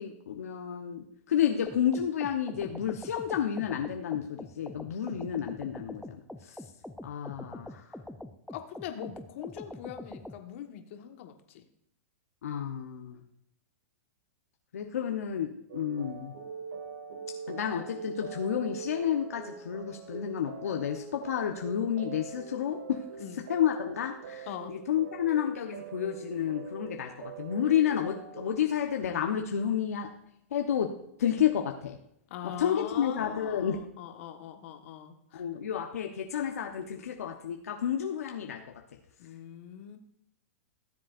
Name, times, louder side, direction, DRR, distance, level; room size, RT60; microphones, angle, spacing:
voice 1, 0.0-6.2 6.4-6.5 7.0-7.9 12.4-13.3 14.7-16.3 17.5-23.0 23.5-30.1 30.5-30.9 31.2-32.0 32.6-33.8 35.3-38.6, left 9 dB, 80° left, 3 dB, 1.0 m, -30 dB
sound 1, 1.7-10.4, left 1 dB, ahead, 0.5 m, -44 dB
voice 2, 8.5-11.6 23.2-23.5 24.5-24.8 32.3-35.5 39.2-40.0, left 10 dB, 55° left, 5 dB, 1.5 m, -42 dB
sound 2, 15.7-28.6, right 6 dB, 70° right, 1.8 m, -43 dB
17.0 x 7.5 x 2.6 m, 0.72 s
hypercardioid pair, 125°, 8 cm